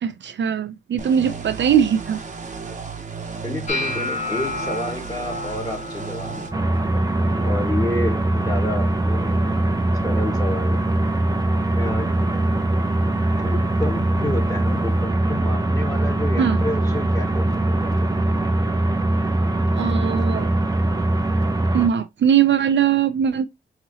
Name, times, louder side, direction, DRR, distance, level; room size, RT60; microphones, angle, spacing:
voice 1, 0.0-2.2 16.4-16.6 19.8-20.5 21.7-23.4, right 8 dB, 70° right, 0.5 m, -20 dB
sound 1, 1.0-6.5, right 5 dB, 40° right, 0.8 m, -34 dB
voice 2, 3.4-6.5 6.9-7.0 7.4-9.5 10.0-10.8 11.8-12.1 13.3-18.0, left 1 dB, 20° left, 1.7 m, -30 dB
sound 2, 3.7-9.8 10.0-10.6 10.9-11.4 12.1-12.3 14.0-14.1, left 2 dB, 40° left, 1.6 m, -33 dB
sound 3, 6.5-21.9, right 2 dB, 20° right, 0.5 m, -21 dB
5.5 x 2.9 x 2.8 m
wide cardioid pair, 135°, 20 cm